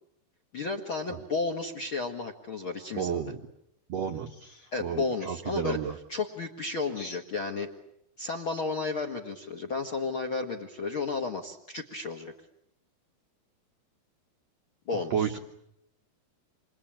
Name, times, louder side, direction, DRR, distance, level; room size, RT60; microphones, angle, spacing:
voice 1, 0.5-3.2 4.7-5.8 6.1-7.7 8.2-12.3 14.8-15.4, left 4 dB, 55° left, 5 dB, 1.4 m, -33 dB
voice 2, 2.9-3.4 3.9-5.9 7.0-7.2 15.1-15.4, right 7 dB, 80° right, 4 dB, 1.4 m, -32 dB
28.5 x 23.0 x 8.9 m, 0.78 s
omnidirectional pair, 5.0 m